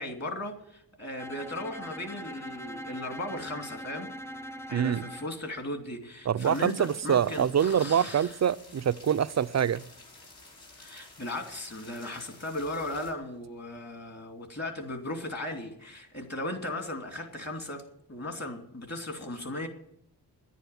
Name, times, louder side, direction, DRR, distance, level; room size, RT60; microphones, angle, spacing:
voice 1, 0.0-4.1 4.7-8.3 10.8-17.8 18.1-19.7, left 1 dB, 40° left, 2.9 m, -37 dB
Bowed string instrument, 1.2-5.4, equal, 5° left, 0.6 m, -42 dB
voice 2, 4.7-5.1 6.3-9.8, right 8 dB, 45° right, 0.5 m, -25 dB
sound 1, 6.4-13.1, left 2 dB, 70° left, 4.4 m, -52 dB
11.0 x 9.2 x 9.5 m
wide cardioid pair, 90°, 40 cm